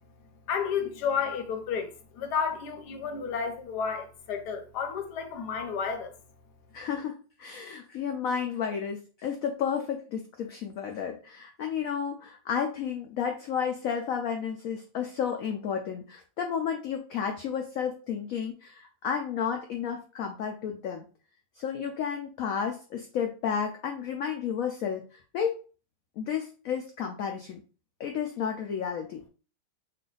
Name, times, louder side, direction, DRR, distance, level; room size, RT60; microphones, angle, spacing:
voice 1, 0.5-6.1, left 6 dB, 70° left, 1.2 m, -31 dB
voice 2, 6.7-21.1 21.6-25.5 26.2-27.6 28.0-29.2, left 7 dB, 85° left, 0.7 m, -32 dB
3.3 x 2.5 x 3.8 m
omnidirectional pair, 2.0 m